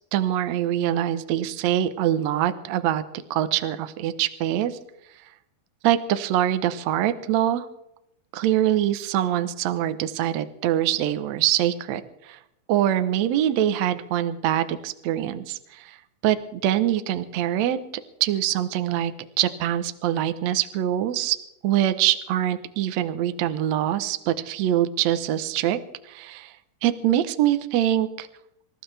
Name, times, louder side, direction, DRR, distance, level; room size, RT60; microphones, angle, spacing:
voice 1, 0.1-3.0 3.3-4.8 5.8-7.7 8.3-12.4 12.7-16.0 16.2-17.8 18.2-19.1 19.4-21.4 21.6-25.8 26.0-26.5 26.8-28.3, right 11 dB, 85° right, 10 dB, 1.5 m, -24 dB
27.0 x 14.5 x 3.4 m, 0.83 s
omnidirectional pair, 4.4 m